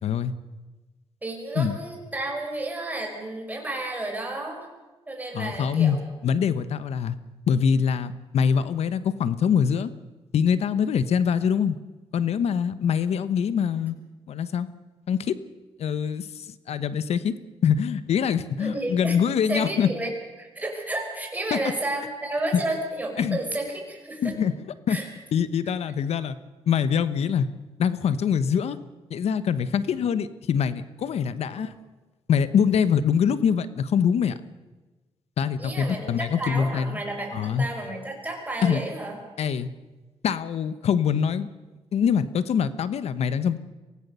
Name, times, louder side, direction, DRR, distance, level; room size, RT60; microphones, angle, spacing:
voice 1, 0.0-0.3 1.6-1.8 5.3-6.0 6.2-7.2 7.5-9.9 10.3-11.8 12.1-13.9 14.3-14.7 15.1-15.4 15.8-17.3 17.6-19.9 21.5-21.7 23.2-23.4 24.2-24.5 24.9-25.0 25.3-26.4 26.7-27.5 27.8-28.8 29.1-31.7 32.3-34.4 35.4-37.0 37.3-37.6 38.6-38.8 39.4-39.7 40.2-41.5 41.9-43.6, left 7 dB, 75° left, 14 dB, 1.1 m, -24 dB
voice 2, 1.2-4.7 5.1-6.0 18.6-19.2 19.5-20.1 20.4-24.3 24.9-25.1 31.5-31.7 35.6-39.2, right 2 dB, 15° right, 1 dB, 5.5 m, -31 dB
23.5 x 17.0 x 6.9 m, 1.2 s
cardioid pair, 100°, 11 cm